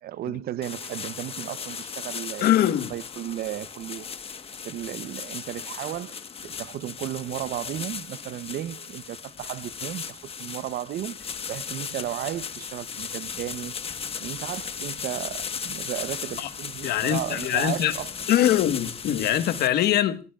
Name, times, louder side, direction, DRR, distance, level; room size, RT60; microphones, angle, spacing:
voice 1, 0.0-4.1 4.6-13.7 14.2-18.1, right 12 dB, 65° right, 0.8 m, -34 dB
sound 1, 0.6-19.7, left 6 dB, 35° left, 1.2 m, -36 dB
voice 2, 2.4-2.9 16.4-16.5 16.8-17.9 18.3-20.2, left 11 dB, 70° left, 1.4 m, -22 dB
28.5 x 19.0 x 2.4 m
cardioid pair, 110°, 17 cm